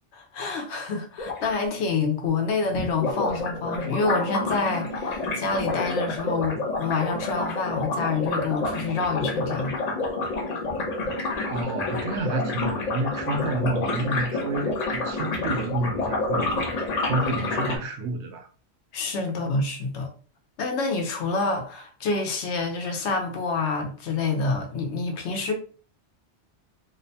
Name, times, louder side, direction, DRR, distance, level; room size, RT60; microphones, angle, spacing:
voice 1, 0.1-9.7 18.9-20.1 20.6-25.5, left 4 dB, 90° left, 0.9 m, -27 dB
sound 1, 1.2-1.5 2.7-17.8, left 2 dB, 50° left, 0.5 m, -29 dB
voice 2, 11.5-16.7 17.1-18.5, right 2 dB, 85° right, 0.9 m, -29 dB
2.6 x 2.1 x 2.6 m
omnidirectional pair, 1.1 m